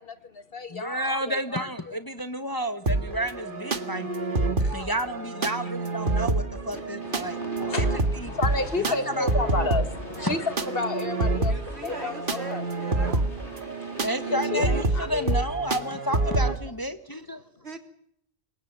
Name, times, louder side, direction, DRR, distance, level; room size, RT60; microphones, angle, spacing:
voice 1, 0.0-1.9 4.6-4.8 7.1-7.9 8.3-11.5 11.8-12.6 14.3-15.4, left 3 dB, 55° left, 10 dB, 1.8 m, -31 dB
voice 2, 0.7-4.3 4.7-7.9 8.1-8.3 8.8-9.3 10.2-10.4 14.0-17.4, equal, 20° left, 10 dB, 1.1 m, -31 dB
sound 1, 2.9-16.6, right 2 dB, 50° right, 2.0 m, -28 dB
sound 2, 6.7-15.6, left 2 dB, 75° left, 4.1 m, -46 dB
voice 3, 11.4-13.3 17.6-17.8, right 3 dB, 65° right, 5 dB, 3.8 m, -40 dB
27.5 x 22.5 x 7.3 m, 0.73 s
omnidirectional pair, 1.2 m